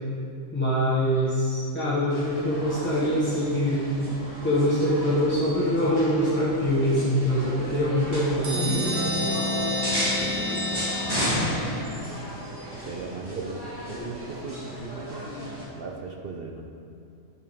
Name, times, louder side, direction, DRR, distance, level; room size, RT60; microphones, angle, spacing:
voice 1, 0.5-3.8 4.4-8.5, equal, 10° left, -10 dB, 1.1 m, -24 dB
sound 1, 2.1-15.6, equal, 15° right, 1.8 m, -34 dB
voice 2, 8.3-9.4 9.8-11.5 12.7-13.6 13.9-16.6, right 4 dB, 55° right, 3 dB, 0.7 m, -38 dB
sound 2, 8.4-12.0, left 1 dB, 75° right, 1.7 m, -28 dB
11.0 x 5.9 x 3.6 m, 2.7 s
omnidirectional pair, 1.4 m